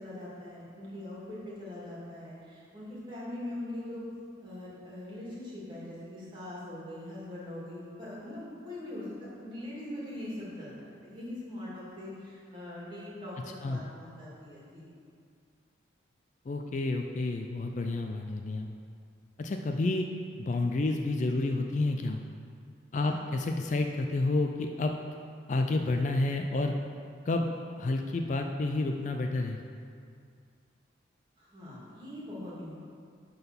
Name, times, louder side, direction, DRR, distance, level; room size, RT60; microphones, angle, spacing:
voice 1, 0.0-4.0 4.4-14.9 23.0-23.2 31.4-32.8, left 1 dB, 25° right, -7 dB, 2.3 m, -42 dB
voice 2, 16.5-18.7 19.4-20.1 20.4-22.2 22.9-24.9 25.5-26.7 27.3-27.5 27.8-29.6, left 2 dB, 40° left, 4 dB, 0.3 m, -29 dB
10.5 x 3.9 x 5.9 m, 2.3 s
head